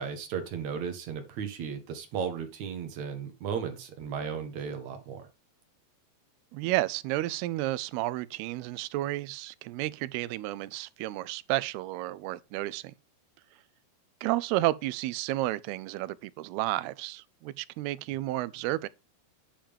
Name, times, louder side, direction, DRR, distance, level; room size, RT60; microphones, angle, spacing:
voice 1, 0.0-5.2, right 6 dB, 65° right, 1.9 m, -35 dB
voice 2, 6.5-12.9 14.2-18.9, right 17 dB, 80° right, 2.4 m, -31 dB
8.7 x 7.5 x 3.5 m
omnidirectional pair, 4.8 m